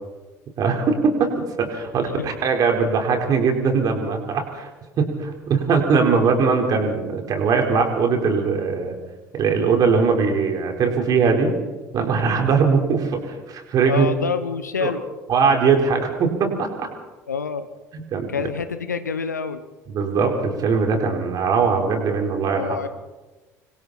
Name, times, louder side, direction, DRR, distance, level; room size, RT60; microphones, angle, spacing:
voice 1, 0.6-4.7 5.0-9.0 9.3-11.6 11.9-14.1 14.8-14.9 15.3-16.9 18.1-18.3 19.9-22.8, right 5 dB, 45° right, 3 dB, 4.6 m, -20 dB
voice 2, 13.9-15.0 17.3-17.7 18.3-19.6 22.5-22.9, left 5 dB, 80° left, 12 dB, 1.2 m, -27 dB
25.5 x 25.5 x 4.4 m, 1.2 s
figure-of-eight pair, 60°, 9 cm